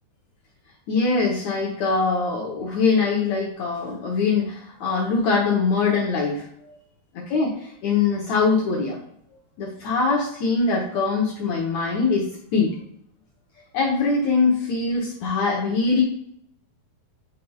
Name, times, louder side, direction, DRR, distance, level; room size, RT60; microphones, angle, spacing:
voice 1, 0.9-6.7 7.3-9.0 9.6-12.3 12.5-12.7 13.7-16.0, left 4 dB, 80° left, -2 dB, 1.6 m, -22 dB
9.2 x 5.4 x 2.3 m, 0.68 s
omnidirectional pair, 4.7 m